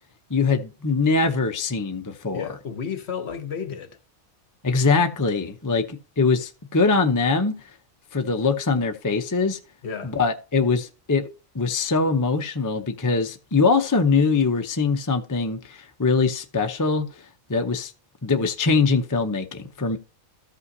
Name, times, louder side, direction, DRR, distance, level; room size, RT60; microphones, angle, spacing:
voice 1, 0.3-2.4 4.6-7.5 8.1-9.6 10.0-11.3 11.5-17.1 17.5-17.9 18.2-20.0, left 4 dB, 20° left, 0.5 m, -22 dB
voice 2, 2.3-3.9 9.8-10.1, left 6 dB, 55° left, 1.1 m, -32 dB
14.0 x 5.6 x 2.7 m
omnidirectional pair, 1.5 m